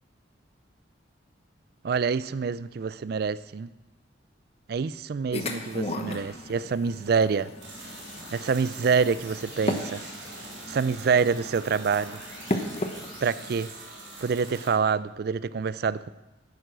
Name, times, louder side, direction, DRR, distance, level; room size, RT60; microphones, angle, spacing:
voice 1, 1.8-3.7 4.7-7.5 8.3-10.0 10.7-12.2 13.2-13.7 14.2-16.1, right 5 dB, 55° right, 0.3 m, -26 dB
sound 1, 5.3-13.6, left 1 dB, 35° left, 1.0 m, -36 dB
sound 2, 6.9-14.5, left 2 dB, 60° left, 4.4 m, -50 dB
sound 3, 7.6-14.7, right 3 dB, 85° right, 3.0 m, -44 dB
10.0 x 9.4 x 6.2 m
head